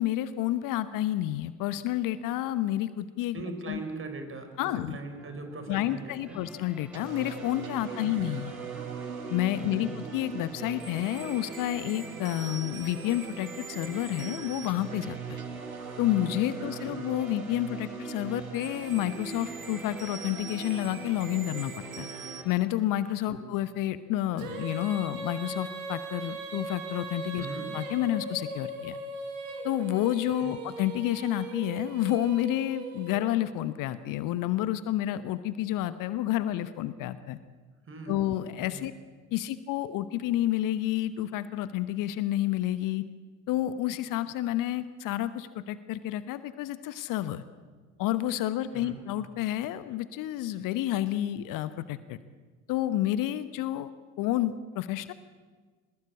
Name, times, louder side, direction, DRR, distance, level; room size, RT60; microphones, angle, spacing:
voice 1, 0.0-3.8 4.6-5.0 5.7-8.5 9.3-15.4 16.0-22.1 22.4-27.5 27.7-29.0 29.6-37.4 38.1-38.9 39.3-43.1 43.5-47.4 48.0-52.2 52.7-53.9 54.2-55.1, left 13 dB, 50° left, 14 dB, 1.1 m, -30 dB
voice 2, 3.3-6.4 8.0-8.1 9.8-9.9 16.9-17.0 23.3-23.4 27.4-27.7 30.4-30.5 37.9-38.2 38.7-38.8 48.7-49.0, right 3 dB, 30° right, 7 dB, 5.2 m, -40 dB
sound 1, 5.2-22.7, equal, 5° right, 3.4 m, -50 dB
sound 2, 6.9-22.4, right 6 dB, 90° right, 1.6 m, -40 dB
Female singing, 24.4-33.5, right 3 dB, 70° right, 4.2 m, -39 dB
23.0 x 20.0 x 8.5 m, 1.5 s
figure-of-eight pair, 65°, 41 cm